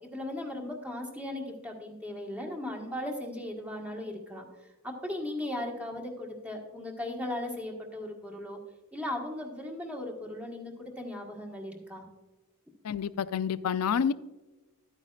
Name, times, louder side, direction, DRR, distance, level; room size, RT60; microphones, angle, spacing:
voice 1, 0.0-4.4 4.8-8.6 8.9-12.1, left 1 dB, 5° right, 0 dB, 1.4 m, -37 dB
voice 2, 12.8-14.1, left 7 dB, 75° left, 16 dB, 0.4 m, -28 dB
12.5 x 9.1 x 2.4 m, 1.2 s
head